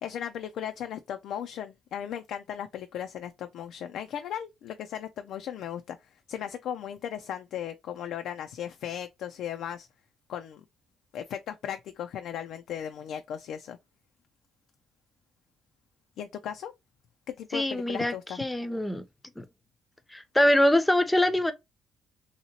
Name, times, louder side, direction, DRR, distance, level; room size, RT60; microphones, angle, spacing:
voice 1, 0.0-9.9 10.3-10.6 11.1-13.8 16.2-16.7 17.3-18.4, left 9 dB, 80° left, 0.3 m, -36 dB
voice 2, 17.5-19.0 19.4-19.5 20.1-21.5, left 1 dB, 10° left, 0.5 m, -24 dB
2.8 x 2.8 x 2.7 m
cardioid pair, 90°, 0 cm